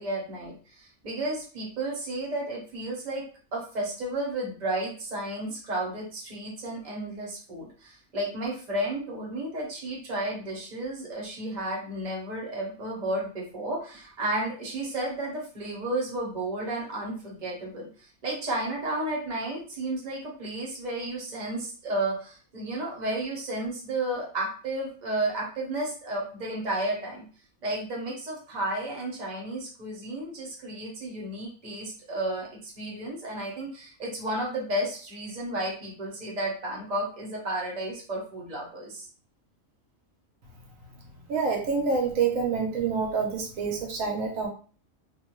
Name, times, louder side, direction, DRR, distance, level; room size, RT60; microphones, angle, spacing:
voice 1, 0.0-3.2 3.5-27.2 27.6-39.1, right 1 dB, 35° right, -2 dB, 0.9 m, -32 dB
voice 2, 41.3-44.5, right 5 dB, 80° right, 1 dB, 1.0 m, -27 dB
2.5 x 2.2 x 3.0 m, 0.40 s
omnidirectional pair, 1.4 m